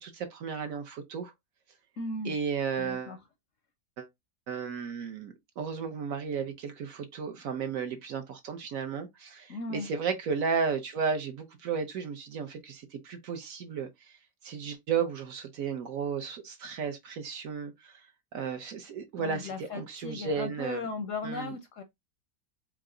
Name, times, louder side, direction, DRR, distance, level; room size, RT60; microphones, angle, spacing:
voice 1, 0.0-1.3 2.2-3.2 4.0-4.1 4.5-14.2 14.4-17.9 18.3-20.9 21.2-21.5, right 6 dB, 65° right, 1.0 m, -34 dB
voice 2, 2.0-2.3 2.8-3.2 9.5-9.9 19.2-21.8, left 3 dB, 65° left, 0.8 m, -37 dB
4.7 x 2.1 x 3.6 m
omnidirectional pair, 1.8 m